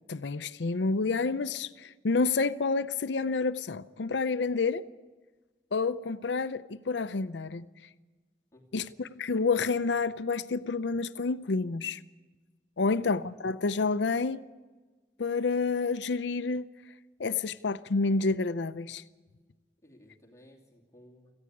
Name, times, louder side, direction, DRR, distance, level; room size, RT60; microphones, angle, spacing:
voice 1, 0.1-4.8 5.7-7.7 8.7-12.0 12.8-14.4 15.2-16.7 17.2-19.0, left 4 dB, 75° left, 13 dB, 0.6 m, -29 dB
voice 2, 8.5-9.1 12.9-13.2 19.8-21.3, equal, 15° left, -2 dB, 2.6 m, -57 dB
18.0 x 15.0 x 9.8 m, 1.3 s
head